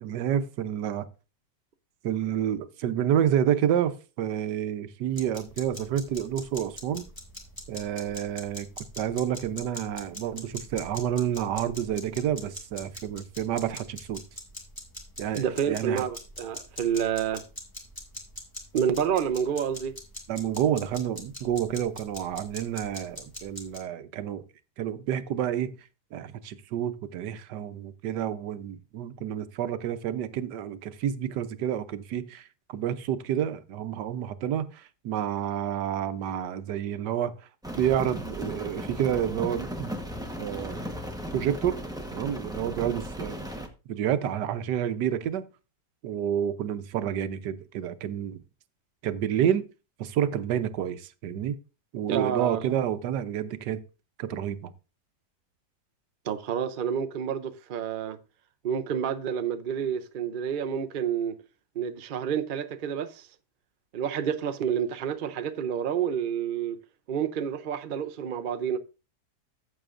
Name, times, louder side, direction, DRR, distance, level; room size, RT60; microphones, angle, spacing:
voice 1, 0.0-1.1 2.0-7.0 7.7-8.7 9.0-14.2 15.2-16.0 20.3-24.4 24.8-25.8 26.1-37.3 37.8-39.9 40.4-40.8 41.3-41.8 42.1-43.4 43.9-45.4 46.0-48.4 49.0-49.7 50.0-51.6 51.9-53.8 54.2-54.7, right 10 dB, 80° right, 1.4 m, -29 dB
sound 1, 5.1-23.8, equal, 10° left, 2.1 m, -43 dB
voice 2, 15.3-17.4 18.7-20.0 52.1-52.6 56.2-58.2 58.6-61.4 61.8-63.3 63.9-66.8 67.1-68.8, right 8 dB, 60° right, 0.5 m, -29 dB
Rain, 37.6-43.7, equal, 5° right, 0.8 m, -36 dB
14.0 x 7.7 x 2.5 m
omnidirectional pair, 1.8 m